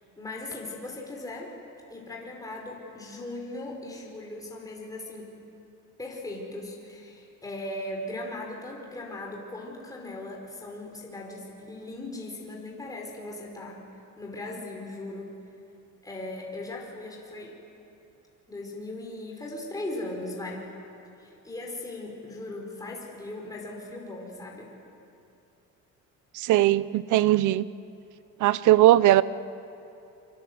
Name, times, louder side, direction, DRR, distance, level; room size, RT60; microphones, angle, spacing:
voice 1, 0.2-1.5 1.9-5.4 6.0-13.8 14.2-15.3 16.0-17.6 18.5-20.7 21.2-24.7, left 2 dB, 10° left, -1 dB, 4.6 m, -38 dB
voice 2, 26.3-27.7 28.4-29.2, right 15 dB, 70° right, 17 dB, 0.8 m, -19 dB
29.0 x 25.0 x 7.9 m, 2.8 s
cardioid pair, 140°, 31 cm